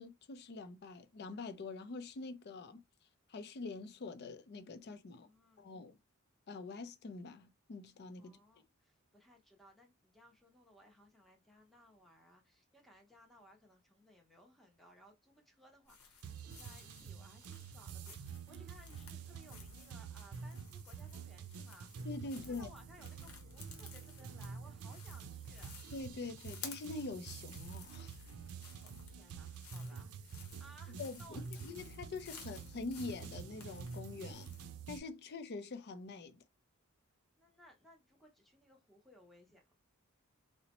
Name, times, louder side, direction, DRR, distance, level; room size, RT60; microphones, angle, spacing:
voice 1, 0.0-2.8 3.3-5.3 5.6-6.0 6.5-8.4 22.0-22.7 25.9-28.2 31.0-34.5 34.9-36.4, left 3 dB, 50° left, 0.4 m, -45 dB
voice 2, 5.1-5.7 8.2-21.9 22.2-25.8 28.8-31.6 37.4-39.7, equal, ahead, 0.7 m, -62 dB
sound 1, 15.8-34.7, left 6 dB, 85° left, 0.9 m, -56 dB
sound 2, 16.2-35.0, right 5 dB, 90° right, 0.4 m, -48 dB
3.9 x 2.1 x 2.9 m
head